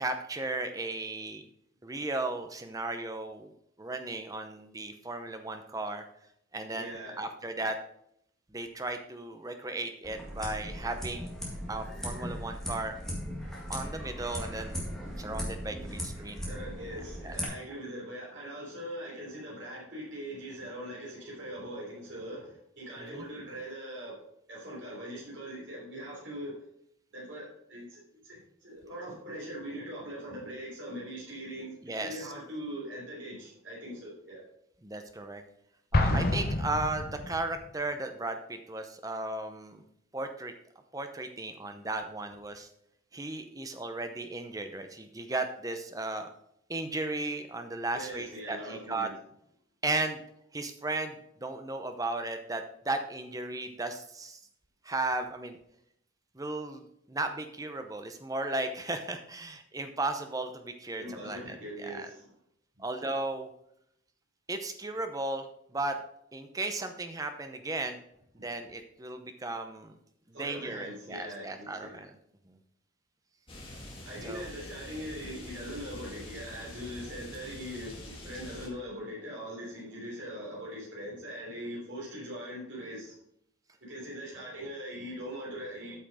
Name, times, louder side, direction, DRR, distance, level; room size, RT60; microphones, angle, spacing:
voice 1, 0.0-1.5 1.8-3.5 3.8-6.0 6.5-7.8 8.5-11.3 11.7-13.0 13.7-14.8 15.2-16.4 17.2-17.4 23.0-23.3 31.8-32.3 34.8-35.4 35.9-39.8 40.1-40.5 40.9-42.7 43.1-46.3 46.7-49.1 49.8-50.2 50.5-54.4 54.8-55.6 56.3-56.8 57.1-62.1 62.8-63.5 64.5-66.0 66.3-68.0 68.3-69.9 70.3-72.1 72.5-72.6 74.2-74.5, right 2 dB, 15° right, 7 dB, 0.7 m, -35 dB
voice 2, 6.7-7.2 16.4-24.2 24.5-26.6 27.1-34.4 47.9-49.1 61.0-62.3 70.3-72.0 74.0-83.1 83.8-86.0, equal, 65° right, -5 dB, 3.4 m, -41 dB
sound 1, 10.0-17.5, equal, ahead, 1.9 m, -38 dB
Explosion, 35.9-37.7, left 2 dB, 45° left, 0.9 m, -28 dB
sound 2, 73.5-78.7, left 1 dB, 25° left, 1.9 m, -45 dB
8.6 x 5.8 x 4.9 m, 0.73 s
head